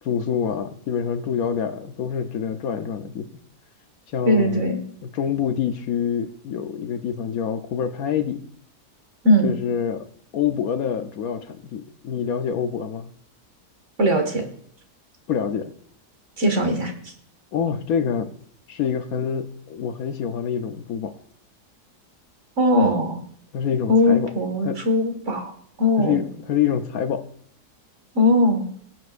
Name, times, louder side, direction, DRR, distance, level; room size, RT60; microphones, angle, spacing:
voice 1, 0.0-3.3 4.1-4.6 5.0-8.4 9.4-10.1 10.3-13.1 15.3-15.7 17.5-18.3 18.7-21.1 23.5-24.3 24.6-24.8 26.0-27.3, left 8 dB, 70° left, 8 dB, 1.2 m, -26 dB
voice 2, 4.3-4.8 9.2-9.5 14.0-14.4 16.4-16.9 22.6-23.2 23.9-25.5 25.8-26.2 28.2-28.7, left 1 dB, 50° right, 4 dB, 2.0 m, -19 dB
20.0 x 8.3 x 2.5 m, 0.63 s
omnidirectional pair, 1.7 m